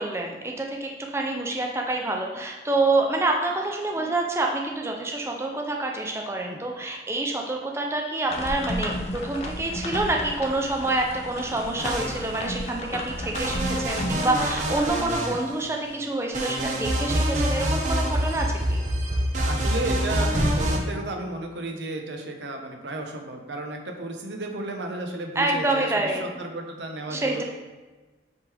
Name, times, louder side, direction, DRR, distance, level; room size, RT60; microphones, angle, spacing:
voice 1, 0.0-18.8 25.4-26.3 27.1-27.4, right 2 dB, 15° right, 1 dB, 0.5 m, -27 dB
sound 1, 8.3-15.0, equal, 35° left, 0.6 m, -33 dB
sound 2, 11.8-12.7 13.3-15.9 16.3-20.8, right 1 dB, 45° right, 0.8 m, -26 dB
voice 2, 19.4-27.4, right 2 dB, 80° right, 3 dB, 0.9 m, -33 dB
7.4 x 3.7 x 3.4 m, 1.3 s
head